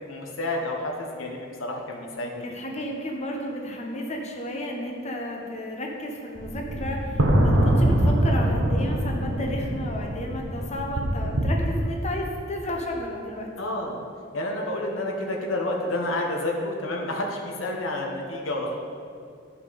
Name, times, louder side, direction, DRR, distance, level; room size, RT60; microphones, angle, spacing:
voice 1, 0.0-2.5 13.6-14.0 14.3-18.8, left 1 dB, 85° left, 0 dB, 1.2 m, -29 dB
voice 2, 2.4-13.5, equal, 35° left, 0 dB, 1.0 m, -32 dB
sound 1, 6.4-11.6, right 1 dB, 85° right, 1.1 m, -23 dB
12.0 x 5.7 x 4.2 m, 2.4 s
head